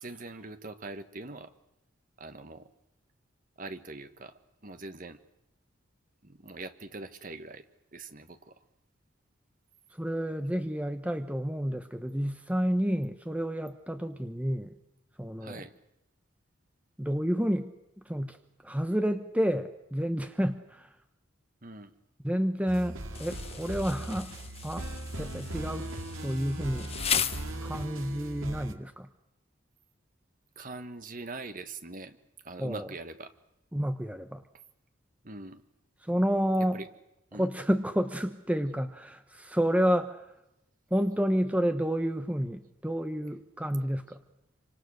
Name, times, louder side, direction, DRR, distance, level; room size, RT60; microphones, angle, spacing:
voice 1, 0.0-1.5 2.2-2.7 3.6-5.2 6.2-7.6 7.9-8.5 15.4-15.7 21.6-21.9 30.5-32.2 32.4-33.3 35.2-35.6 36.7-36.9 37.3-37.5, right 2 dB, 40° right, 9 dB, 1.5 m, -42 dB
voice 2, 9.9-14.8 15.2-15.7 17.0-17.7 18.0-18.4 18.6-20.9 22.2-24.3 24.6-24.9 25.2-25.9 26.2-26.9 27.6-29.1 32.6-32.9 33.7-34.4 36.0-36.8 37.3-40.3 40.9-44.2, equal, 5° right, 8 dB, 1.0 m, -30 dB
sound 1, 22.7-28.7, right 1 dB, 80° right, 2.2 m, -39 dB
Insect, 23.1-28.1, left 8 dB, 30° left, 0.9 m, -36 dB
27.0 x 25.5 x 6.5 m, 0.86 s
head